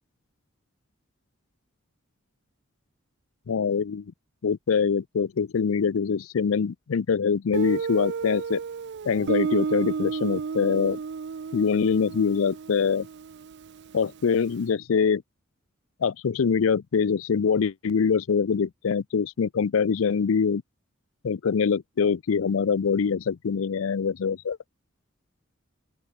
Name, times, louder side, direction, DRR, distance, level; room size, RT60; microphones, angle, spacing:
voice 1, 3.5-4.0 4.4-8.6 9.0-11.0 11.5-13.1 13.9-15.2 16.0-20.6 21.2-24.6, left 6 dB, 75° left, 0.5 m, -24 dB
Guitar, 7.5-14.2, right 5 dB, 55° right, 0.4 m, -32 dB
open air
head